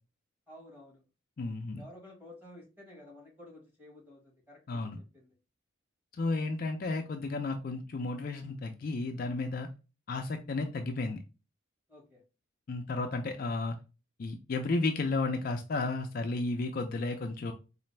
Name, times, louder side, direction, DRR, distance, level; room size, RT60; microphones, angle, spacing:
voice 1, 0.5-1.0 1.8-5.3 11.9-12.2, left 1 dB, 10° right, -3 dB, 1.4 m, -52 dB
voice 2, 1.4-1.8 4.7-5.0 6.2-9.7 10.1-11.2 12.7-13.8 14.2-17.5, left 3 dB, 45° left, 5 dB, 0.4 m, -33 dB
4.0 x 2.5 x 3.1 m, 0.31 s
head